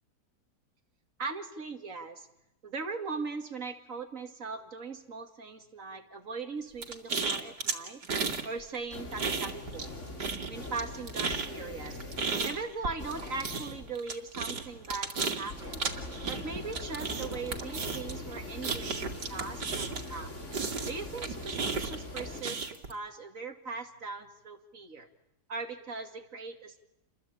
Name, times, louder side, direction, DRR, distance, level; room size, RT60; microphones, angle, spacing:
voice 1, 1.2-2.3 2.6-8.0 8.4-9.9 10.5-12.0 12.4-15.9 16.3-20.3 20.9-22.6 22.9-25.1 25.5-26.8, right 4 dB, 50° right, 6 dB, 2.7 m, -39 dB
sound 1, 6.8-8.5 8.7-9.9 10.2-20.2 20.5-22.9, right 4 dB, 85° right, 3.0 m, -34 dB
sound 2, 8.9-22.4, left 2 dB, 45° left, 4.1 m, -43 dB
29.0 x 22.0 x 8.8 m, 0.86 s
omnidirectional pair, 1.8 m